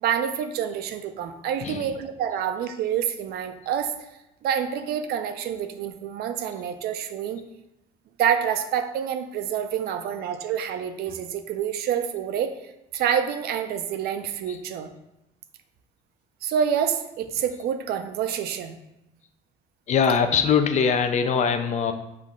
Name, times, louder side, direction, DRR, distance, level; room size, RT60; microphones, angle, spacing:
voice 1, 0.0-3.9 4.4-7.4 8.2-12.6 12.9-14.9 16.4-18.8, right 8 dB, 70° right, 8 dB, 0.5 m, -27 dB
voice 2, 19.9-21.9, left 6 dB, 45° left, 8 dB, 0.4 m, -22 dB
5.6 x 2.4 x 3.6 m, 0.90 s
cardioid pair, 110°, 17 cm